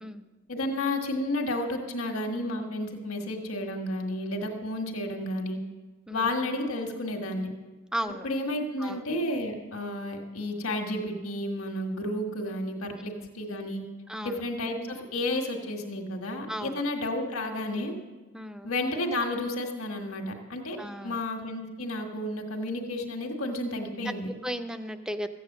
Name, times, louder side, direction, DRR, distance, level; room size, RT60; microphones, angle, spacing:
voice 1, 0.5-5.6 6.1-7.5 8.2-13.8 14.2-17.9 18.6-20.8 21.0-24.3, left 1 dB, 85° left, 2 dB, 1.6 m, -31 dB
voice 2, 7.9-8.3 8.8-9.0 13.2-13.3 14.1-14.4 16.5-16.8 18.3-18.7 20.8-21.2 24.0-24.1 24.4-25.3, equal, 5° right, 9 dB, 0.5 m, -35 dB
14.0 x 8.5 x 7.3 m, 1.3 s
head